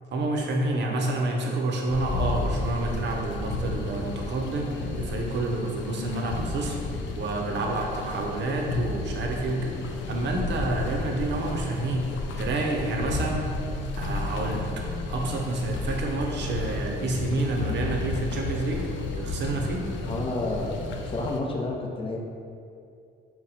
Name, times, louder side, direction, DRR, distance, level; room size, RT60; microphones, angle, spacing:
voice 1, 0.1-6.8 7.1-13.5 14.0-14.7 15.1-18.9 19.2-19.8, right 2 dB, 65° right, 0 dB, 0.6 m, -29 dB
sound 1, 1.9-21.4, left 2 dB, 70° left, 0.4 m, -32 dB
voice 2, 20.0-20.8 21.0-22.2, left 2 dB, 25° left, -1 dB, 0.6 m, -30 dB
4.2 x 2.1 x 4.0 m, 2.5 s
cardioid pair, 90°, 20 cm